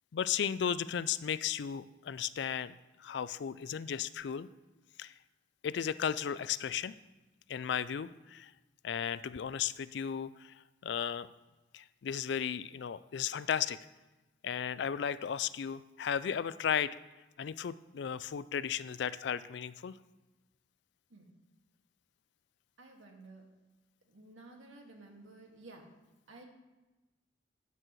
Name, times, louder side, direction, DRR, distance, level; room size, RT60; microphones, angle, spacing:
voice 1, 0.1-4.5 5.0-5.1 5.6-7.0 7.5-8.5 8.8-10.6 10.8-11.3 11.7-13.8 14.4-17.0 17.4-20.0, left 8 dB, 60° left, 16 dB, 0.3 m, -35 dB
voice 2, 22.8-23.4 24.1-25.8 26.3-26.5, right 2 dB, 80° right, 1 dB, 2.0 m, -53 dB
13.5 x 9.0 x 3.1 m, 1.1 s
head